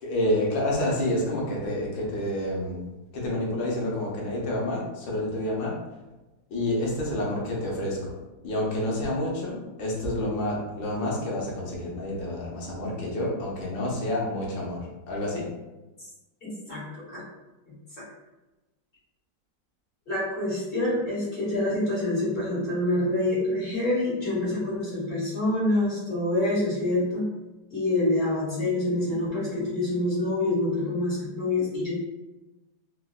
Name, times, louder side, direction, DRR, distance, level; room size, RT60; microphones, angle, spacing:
voice 1, 0.0-2.8 3.1-5.7 6.5-8.1 8.4-15.5, left 1 dB, 85° left, -3 dB, 1.5 m, -28 dB
voice 2, 16.7-17.2 20.1-27.3 27.7-31.9, left 1 dB, 40° left, -9 dB, 1.3 m, -26 dB
3.7 x 2.1 x 2.3 m, 1.1 s
omnidirectional pair, 2.0 m